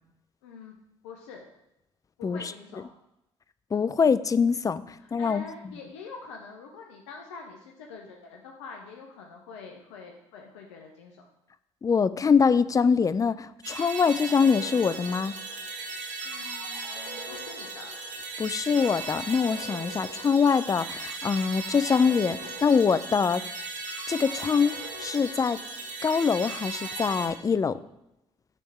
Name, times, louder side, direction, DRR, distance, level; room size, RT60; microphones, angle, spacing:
voice 1, 0.4-0.7 1.0-1.5 2.2-2.8 5.0-11.2 16.2-17.9, left 4 dB, 85° left, 1 dB, 0.7 m, -45 dB
voice 2, 3.7-4.8 5.1-5.4 11.8-15.3 18.4-23.4 24.1-25.6 26.0-27.8, left 5 dB, 25° left, 15 dB, 0.3 m, -24 dB
sound 1, 13.6-27.3, right 3 dB, 55° right, 1.5 m, -37 dB
8.3 x 3.4 x 3.3 m, 0.87 s
hypercardioid pair, 50°, 15 cm